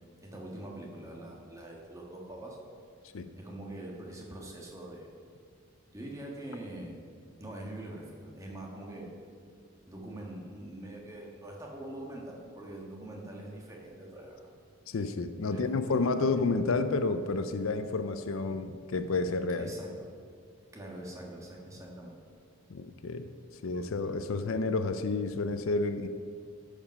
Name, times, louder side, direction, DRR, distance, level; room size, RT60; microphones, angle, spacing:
voice 1, 0.2-2.6 3.4-5.1 5.9-7.0 7.4-9.1 9.8-14.5 15.4-16.4 19.6-19.9 20.7-22.2, right 1 dB, 15° right, -2 dB, 1.4 m, -43 dB
voice 2, 14.9-19.7 22.7-23.3 23.6-26.1, left 3 dB, 70° left, 10 dB, 0.5 m, -30 dB
13.5 x 5.2 x 5.3 m, 2.2 s
head